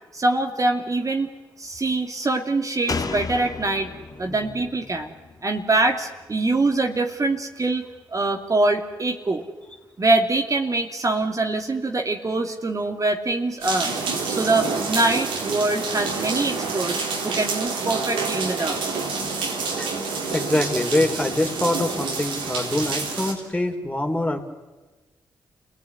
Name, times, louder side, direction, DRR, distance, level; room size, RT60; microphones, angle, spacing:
voice 1, 0.1-1.3 1.6-3.9 4.2-5.1 5.4-7.8 8.1-9.4 10.0-13.9 14.3-17.0 17.2-18.8, right 2 dB, 40° right, 3 dB, 2.7 m, -24 dB
Slam, 2.9-6.4 6.7-6.8, left 4 dB, 45° left, 1.7 m, -34 dB
voice 2, 4.3-4.6 18.6-18.7 19.8-24.5, left 1 dB, 15° left, 4 dB, 3.8 m, -25 dB
sound 1, 13.6-23.3, right 4 dB, 80° right, 3.7 m, -28 dB
28.5 x 18.0 x 9.6 m, 1.2 s
hypercardioid pair, 40°, 9 cm